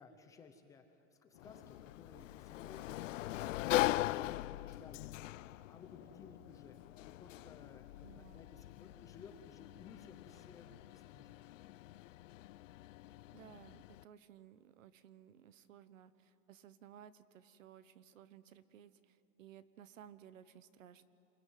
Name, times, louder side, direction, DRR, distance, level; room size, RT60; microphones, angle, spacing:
voice 1, 0.0-6.8 7.2-11.4, left 5 dB, 10° left, 5 dB, 0.6 m, -58 dB
sound 1, 1.3-7.8, left 10 dB, 45° left, 1.2 m, -64 dB
Sliding door, 1.4-14.0, left 16 dB, 70° left, 0.5 m, -41 dB
voice 2, 8.0-8.5 13.3-21.0, right 10 dB, 75° right, 15 dB, 1.3 m, -58 dB
28.0 x 22.0 x 9.4 m, 2.9 s
supercardioid pair, 170°, 40 cm